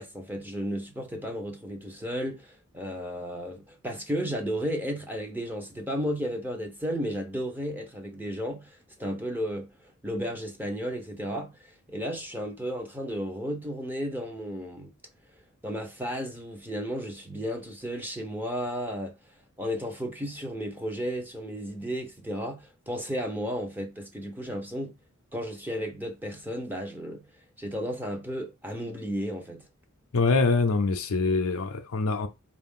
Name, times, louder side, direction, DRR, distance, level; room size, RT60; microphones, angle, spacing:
voice 1, 0.0-9.7 10.0-11.5 11.9-14.9 15.6-19.1 19.6-24.9 25.3-27.2 27.6-29.6, equal, 10° right, 0.6 m, -33 dB
voice 2, 30.1-32.3, left 3 dB, 70° left, 0.5 m, -24 dB
4.6 x 2.4 x 3.6 m
head